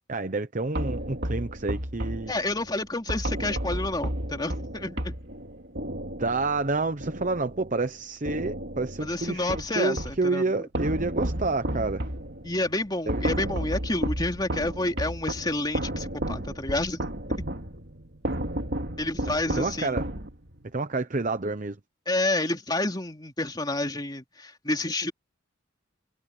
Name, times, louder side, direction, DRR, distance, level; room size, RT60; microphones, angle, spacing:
voice 1, 0.1-2.3 6.2-12.1 13.1-13.2 19.5-20.1 20.7-21.8, right 3 dB, 40° right, 0.9 m, -29 dB
sound 1, 0.8-7.9 8.3-10.3 10.7-20.7, right 1 dB, 60° right, 3.0 m, -33 dB
voice 2, 2.3-5.1 9.0-10.4 12.4-17.0 19.0-20.0 22.1-25.1, left 2 dB, 20° left, 3.3 m, -29 dB
head